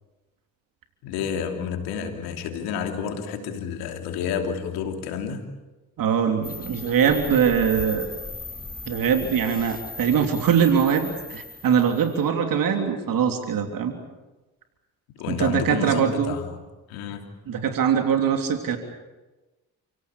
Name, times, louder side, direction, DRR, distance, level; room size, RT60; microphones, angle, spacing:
voice 1, 1.0-5.4 15.1-16.6 16.9-17.3, left 7 dB, 90° left, 4 dB, 3.1 m, -30 dB
voice 2, 6.0-8.1 8.9-13.9 15.3-16.3 17.5-18.8, right 7 dB, 65° right, 5 dB, 3.4 m, -22 dB
sound 1, 6.4-12.2, left 4 dB, 25° left, 2.0 m, -38 dB
29.5 x 17.0 x 8.4 m, 1.1 s
supercardioid pair, 65°, 36 cm